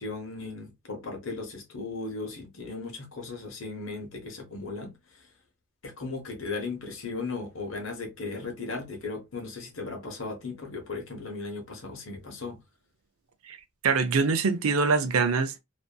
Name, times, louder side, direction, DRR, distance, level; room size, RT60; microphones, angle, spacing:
voice 1, 0.0-5.0 5.8-12.6, left 3 dB, 70° left, 0.9 m, -36 dB
voice 2, 13.8-15.6, right 4 dB, 80° right, 0.5 m, -24 dB
2.7 x 2.6 x 2.2 m
head